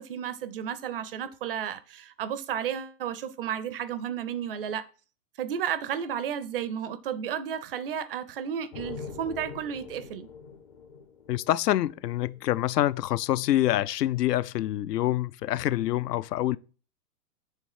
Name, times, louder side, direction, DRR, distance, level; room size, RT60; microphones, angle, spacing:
voice 1, 0.0-4.9 5.4-10.3, right 9 dB, 40° right, 0.5 m, -33 dB
sound 1, 8.7-12.4, left 5 dB, 25° left, 0.4 m, -43 dB
voice 2, 11.3-16.6, left 14 dB, 80° left, 0.6 m, -26 dB
6.6 x 3.4 x 4.8 m
hypercardioid pair, 140°, 47 cm